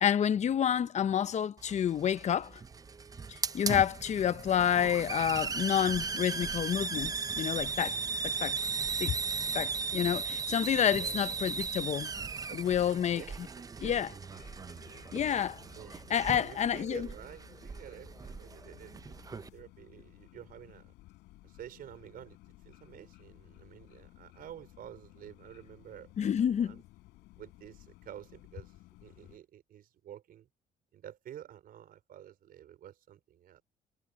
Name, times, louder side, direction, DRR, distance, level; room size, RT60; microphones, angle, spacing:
voice 1, 0.0-2.5 3.5-8.0 8.2-8.5 9.0-9.2 9.5-12.1 12.5-13.2 13.8-14.1 15.1-15.6 16.1-17.1 26.2-26.8, left 9 dB, 45° left, 0.7 m, -29 dB
Hiss, 1.6-19.5, right 5 dB, 20° right, 0.6 m, -37 dB
voice 2, 10.9-11.4 12.5-15.1 15.7-20.9 21.4-22.4 22.6-26.8 27.4-28.7 29.0-30.5 30.9-33.6, right 11 dB, 60° right, 5.1 m, -50 dB
sound 1, 14.3-29.4, left 18 dB, 85° left, 7.1 m, -57 dB
cardioid pair, 110°, 17 cm